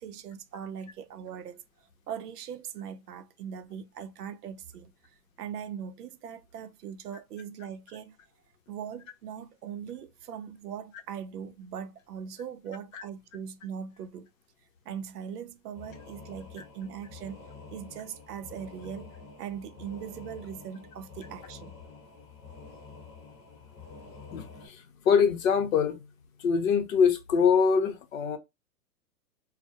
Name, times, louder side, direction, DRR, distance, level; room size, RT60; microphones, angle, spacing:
voice 1, 0.0-1.6 2.1-4.9 5.4-8.2 8.7-14.3 14.9-17.4 17.7-19.1 19.4-21.8, right 8 dB, 75° right, 0.6 m, -40 dB
sound 1, 15.7-24.7, left 4 dB, 20° left, 0.9 m, -48 dB
voice 2, 24.3-26.0 26.4-28.4, left 6 dB, 60° left, 0.7 m, -24 dB
2.2 x 2.1 x 2.7 m
hypercardioid pair, 130°, 47 cm